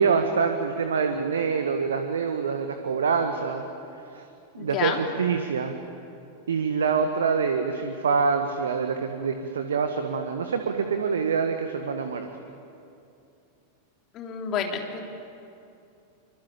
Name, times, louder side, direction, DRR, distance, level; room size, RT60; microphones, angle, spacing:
voice 1, 0.0-3.6 4.1-4.2 4.5-5.7 6.5-12.3, right 5 dB, 65° right, 6 dB, 1.7 m, -25 dB
voice 2, 4.6-5.0 14.1-15.0, left 7 dB, 35° left, 2 dB, 3.8 m, -29 dB
26.5 x 25.5 x 8.8 m, 2.6 s
figure-of-eight pair, 90°, 0 cm